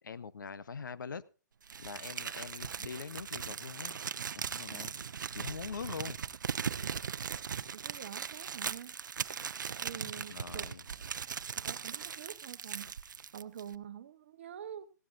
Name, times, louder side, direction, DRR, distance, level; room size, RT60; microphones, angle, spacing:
voice 1, 0.0-1.2 1.8-4.0 4.4-4.9 5.3-6.2 9.9-10.8, left 6 dB, 85° left, 0.8 m, -43 dB
Crumpling crinkling, 1.7-13.7, right 7 dB, 80° right, 0.6 m, -39 dB
voice 2, 7.7-9.0 9.7-10.6 11.6-12.9 13.3-14.9, right 9 dB, 40° right, 1.0 m, -46 dB
16.0 x 14.5 x 2.6 m
hypercardioid pair, 170°, 10 cm